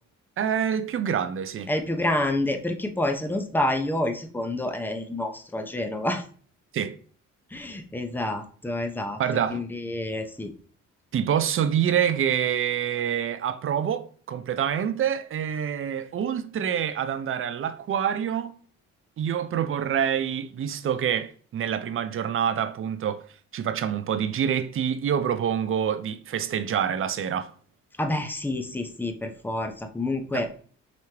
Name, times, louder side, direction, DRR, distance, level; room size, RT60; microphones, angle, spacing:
voice 1, 0.4-1.7 6.7-6.9 9.2-9.6 11.1-18.6 19.2-23.2 23.5-27.5 30.3-30.5, right 8 dB, 45° right, 0.5 m, -26 dB
voice 2, 1.7-6.2 7.5-9.2 9.5-10.5 28.0-30.5, left 1 dB, 5° left, 0.6 m, -28 dB
5.0 x 3.1 x 2.8 m
cardioid pair, 90°, 30 cm